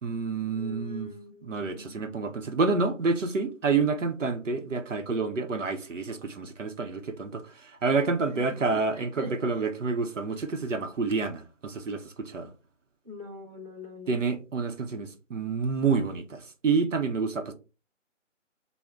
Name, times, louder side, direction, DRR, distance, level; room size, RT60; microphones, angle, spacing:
voice 1, 0.0-1.1 1.4-12.5 14.1-17.5, right 4 dB, 75° right, 0.7 m, -28 dB
voice 2, 0.6-1.9 8.7-9.3 13.0-14.2, left 1 dB, 30° right, 0.7 m, -43 dB
3.4 x 2.1 x 3.5 m
figure-of-eight pair, 175°, 38 cm